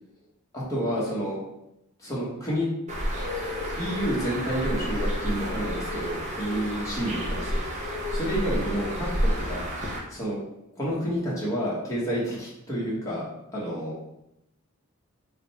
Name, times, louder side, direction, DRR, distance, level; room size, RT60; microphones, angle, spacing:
voice 1, 0.5-1.4 2.0-2.7 3.8-7.6 8.1-9.1 9.4-9.7 10.1-10.4 10.8-13.2 13.5-13.9, equal, 15° left, -7 dB, 1.2 m, -29 dB
Bird, 2.9-10.0, equal, 30° right, 0.8 m, -30 dB
3.7 x 2.3 x 4.1 m, 0.85 s
head